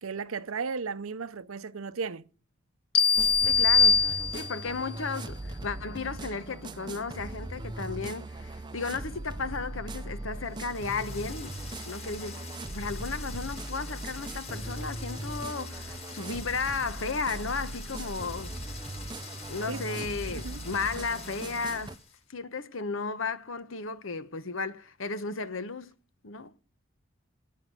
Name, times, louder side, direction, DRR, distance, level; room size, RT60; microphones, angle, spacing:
voice 1, 0.0-2.2 19.7-20.6, right 5 dB, 85° right, 0.7 m, -36 dB
sound 1, 2.9-4.8, left 5 dB, 50° left, 0.8 m, -22 dB
sound 2, 3.1-22.0, right 2 dB, 20° right, 0.6 m, -39 dB
voice 2, 3.4-11.6 11.8-12.4 12.7-18.5 18.8-18.9 19.5-22.0 22.3-25.9 26.2-26.6, left 4 dB, 70° left, 1.1 m, -34 dB
sound 3, 10.4-22.2, left 4 dB, 30° left, 3.8 m, -46 dB
11.0 x 9.4 x 9.4 m
head